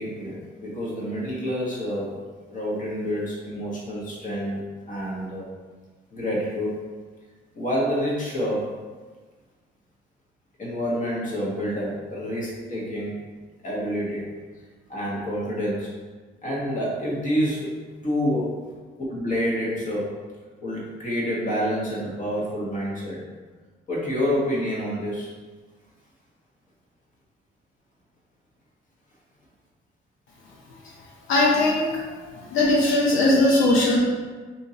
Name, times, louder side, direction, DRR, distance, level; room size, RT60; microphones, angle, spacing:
voice 1, 0.0-2.2 2.5-4.6 4.9-5.4 6.1-6.8 7.5-8.9 10.6-13.1 13.6-14.3 14.9-15.9 16.4-17.7 18.0-18.6 19.1-20.1 20.6-23.3 23.9-25.3, equal, 40° left, -5 dB, 1.3 m, -28 dB
voice 2, 31.3-34.0, left 2 dB, 85° left, -5 dB, 0.7 m, -20 dB
2.8 x 2.8 x 3.7 m, 1.4 s
cardioid pair, 90°, 20 cm